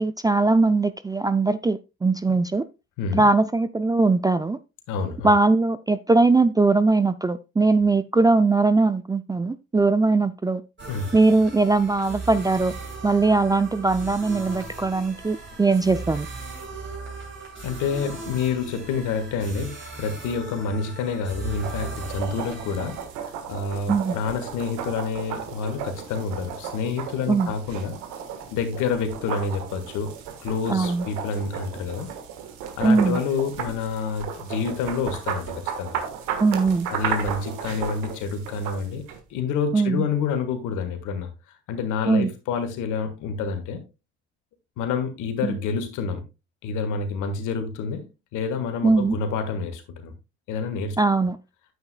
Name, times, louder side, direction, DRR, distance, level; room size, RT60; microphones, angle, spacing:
voice 1, 0.0-2.7 3.1-4.6 5.2-10.6 11.1-12.7 13.0-16.3 23.9-24.1 27.3-27.5 30.7-31.0 32.8-33.2 36.4-36.9 39.7-40.0 42.1-42.3 45.4-45.6 48.8-49.2 51.0-51.4, right 3 dB, 10° right, 0.4 m, -20 dB
voice 2, 4.9-5.3 10.9-11.2 17.6-28.0 28.5-30.1 30.4-32.1 32.8-36.0 36.9-39.0 39.3-41.3 41.7-43.8 44.8-46.2 46.6-48.0 48.3-50.1 50.5-51.0, left 5 dB, 65° left, 1.6 m, -28 dB
sound 1, 10.8-23.1, right 3 dB, 35° right, 3.4 m, -38 dB
sound 2, 21.6-39.2, right 8 dB, 70° right, 1.4 m, -34 dB
9.5 x 8.0 x 2.2 m
hypercardioid pair, 55°, 32 cm